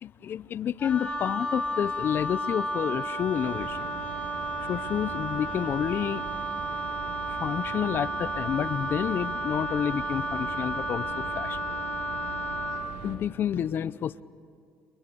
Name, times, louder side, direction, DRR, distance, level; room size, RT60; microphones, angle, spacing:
voice 1, 0.0-4.0 4.7-6.3 7.2-11.6 13.0-14.2, left 9 dB, 55° left, 18 dB, 0.7 m, -29 dB
Wind instrument woodwind instrument, 0.8-12.9, right 1 dB, 30° left, 6.0 m, -32 dB
sound 1, 3.3-13.2, right 5 dB, 90° right, 2.9 m, -42 dB
30.0 x 28.0 x 6.9 m, 2.2 s
supercardioid pair, 80°, 4 cm